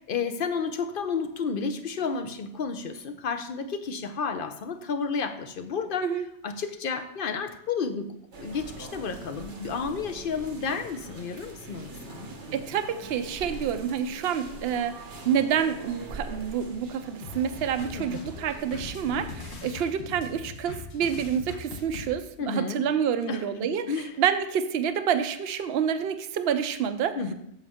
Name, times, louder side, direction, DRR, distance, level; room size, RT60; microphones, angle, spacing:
voice 1, 0.1-6.1 6.4-8.1 8.4-12.3 17.9-18.2 22.4-22.9 23.3-24.1 27.1-27.3, left 5 dB, 55° left, 9 dB, 0.8 m, -31 dB
sound 1, 8.3-19.6, right 2 dB, 85° right, 1.5 m, -43 dB
voice 2, 12.5-15.0 15.3-27.2, right 8 dB, 65° right, 10 dB, 0.8 m, -28 dB
sound 2, 17.2-22.1, left 4 dB, 70° left, 1.2 m, -40 dB
8.1 x 7.2 x 3.5 m, 0.75 s
omnidirectional pair, 1.2 m